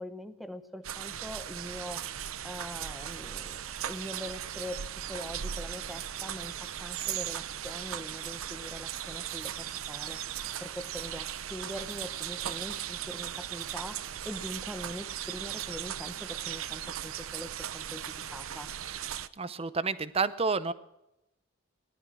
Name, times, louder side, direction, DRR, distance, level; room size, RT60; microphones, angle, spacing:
voice 1, 0.0-10.2 10.6-18.0 18.3-18.7, equal, ahead, 10 dB, 0.9 m, -43 dB
sound 1, 0.8-19.3, right 10 dB, 80° right, 0.7 m, -38 dB
voice 2, 19.4-20.7, right 4 dB, 30° right, 15 dB, 0.6 m, -29 dB
18.5 x 12.0 x 6.2 m, 0.87 s
head